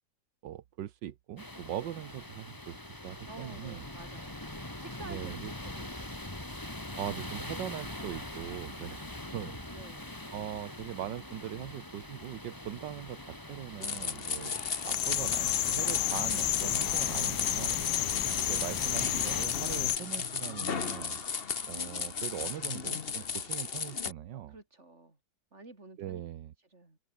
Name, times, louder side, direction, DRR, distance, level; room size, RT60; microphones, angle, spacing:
voice 1, 0.4-3.8 5.1-5.5 7.0-9.0 9.3-9.6 10.3-17.8 18.5-21.2 21.7-24.5 26.0-26.5, right 12 dB, 80° right, 1.6 m, -41 dB
sound 1, 1.4-19.5, left 1 dB, 10° left, 2.6 m, -43 dB
voice 2, 3.3-4.4 4.8-6.2 8.9-9.3 9.7-10.3 18.1-18.5 24.5-25.2 25.5-26.2 26.7-27.0, right 2 dB, 40° right, 4.7 m, -51 dB
sound 2, 13.8-24.1, left 6 dB, 35° left, 1.2 m, -35 dB
sound 3, 14.8-20.0, left 15 dB, 70° left, 1.1 m, -31 dB
omnidirectional pair, 1.9 m